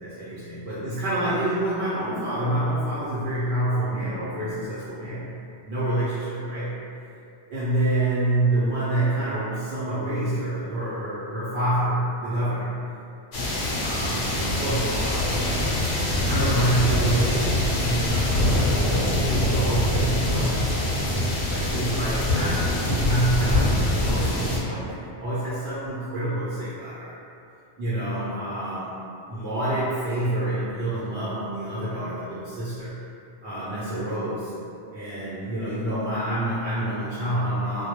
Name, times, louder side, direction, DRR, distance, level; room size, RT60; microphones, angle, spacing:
voice 1, 0.0-5.3 5.7-6.8 7.5-12.7 13.8-15.8 16.2-21.0 21.5-27.1 27.8-29.0 29.3-32.9 33.4-34.5 34.9-37.9, right 1 dB, 80° right, -12 dB, 0.9 m, -27 dB
sound 1, 13.3-24.6, left 1 dB, 80° left, 0.8 m, -24 dB
2.1 x 2.1 x 2.8 m, 2.6 s
omnidirectional pair, 1.1 m